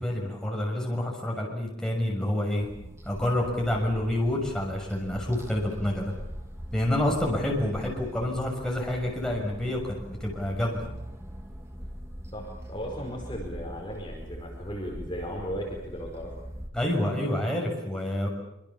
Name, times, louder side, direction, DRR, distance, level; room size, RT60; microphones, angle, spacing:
voice 1, 0.0-2.7 3.1-6.1 6.7-10.9 16.7-18.3, left 1 dB, 5° left, -2 dB, 6.3 m, -28 dB
sound 1, 2.6-16.7, equal, 15° right, 2.5 m, -42 dB
voice 2, 12.3-16.3, equal, 25° left, 0 dB, 5.0 m, -36 dB
25.5 x 25.5 x 7.2 m, 0.89 s
head